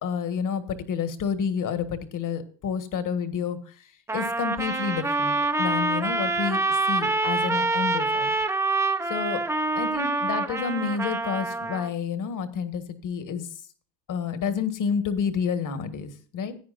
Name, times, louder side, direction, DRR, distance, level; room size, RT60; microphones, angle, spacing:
voice 1, 0.0-3.6 4.1-8.3 9.1-9.4 9.7-13.5 14.1-16.5, left 6 dB, 45° left, 10 dB, 1.7 m, -29 dB
Trumpet, 4.1-11.9, right 3 dB, 5° right, 0.8 m, -26 dB
16.5 x 9.4 x 2.5 m, 0.41 s
cardioid pair, 130°, 44 cm